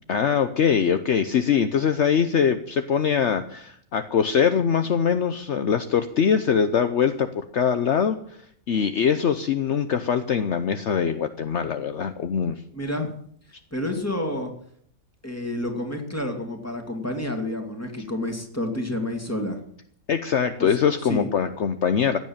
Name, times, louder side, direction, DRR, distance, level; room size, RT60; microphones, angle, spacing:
voice 1, 0.1-8.2 8.7-12.6 20.1-22.2, left 7 dB, 60° left, 9 dB, 1.1 m, -22 dB
voice 2, 12.7-13.1 13.7-14.5 15.2-19.6 20.6-20.8 21.0-21.3, left 1 dB, 10° left, 4 dB, 2.6 m, -29 dB
16.0 x 9.4 x 8.8 m, 0.64 s
omnidirectional pair, 1.4 m